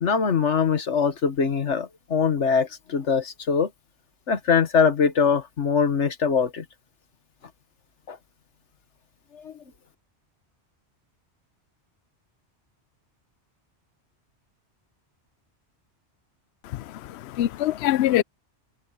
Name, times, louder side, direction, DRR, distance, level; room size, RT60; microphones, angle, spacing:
voice 1, 0.0-3.7 4.3-6.6 8.1-8.2 9.3-9.5, left 6 dB, 90° left, 1.7 m, -22 dB
voice 2, 16.6-18.2, left 13 dB, 70° left, 0.8 m, -24 dB
omnidirectional pair, 1.2 m